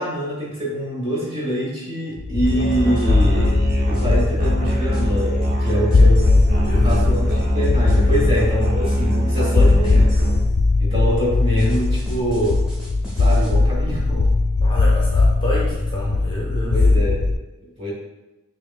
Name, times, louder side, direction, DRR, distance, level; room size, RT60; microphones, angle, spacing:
voice 1, 0.0-3.6 3.9-6.3 6.8-10.1 10.8-12.6 13.1-14.3 16.7-17.2 17.6-17.9, equal, 25° right, -5 dB, 1.1 m, -25 dB
sound 1, 2.2-17.4, left 3 dB, 80° left, 0.4 m, -19 dB
Musical instrument, 2.4-10.4, equal, 40° right, 0.6 m, -22 dB
sound 2, 2.5-10.5 11.6-13.5, left 1 dB, 5° right, 1.1 m, -37 dB
voice 2, 6.6-7.1 8.2-8.3 14.6-16.8, equal, 20° left, -4 dB, 0.5 m, -28 dB
5.7 x 2.4 x 2.3 m, 1.0 s
head